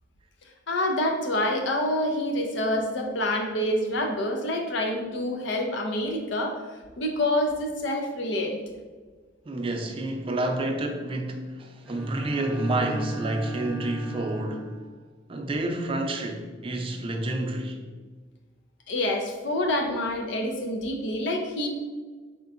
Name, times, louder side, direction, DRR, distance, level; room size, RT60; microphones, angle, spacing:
voice 1, 0.7-6.6 7.0-8.6 18.9-21.7, left 1 dB, 70° left, 3 dB, 0.6 m, -27 dB
voice 2, 9.5-14.7 15.3-17.8, right 1 dB, 30° right, 3 dB, 0.4 m, -29 dB
Bowed string instrument, 11.8-15.0, right 3 dB, 5° right, 0.8 m, -37 dB
4.3 x 3.8 x 2.4 m, 1.4 s
head